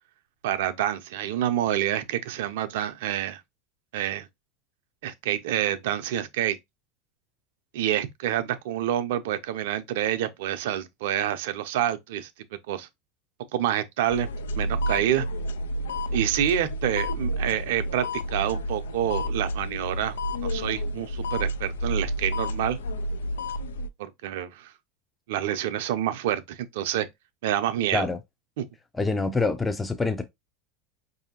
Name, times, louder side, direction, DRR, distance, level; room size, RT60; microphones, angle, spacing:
voice 1, 0.4-3.4 3.9-4.3 5.0-6.6 7.7-12.3 12.7-12.9 13.5-14.3 14.6-15.3 16.1-18.1 18.3-20.2 20.4-22.8 24.0-24.7 25.3-27.1 27.4-28.1 28.6-28.7, right 11 dB, 70° right, 0.6 m, -27 dB
sound 1, 14.1-23.9, equal, 85° left, 0.3 m, -30 dB
voice 2, 29.0-30.2, left 3 dB, 10° left, 0.5 m, -25 dB
4.8 x 2.7 x 2.8 m
hypercardioid pair, 90°, 0 cm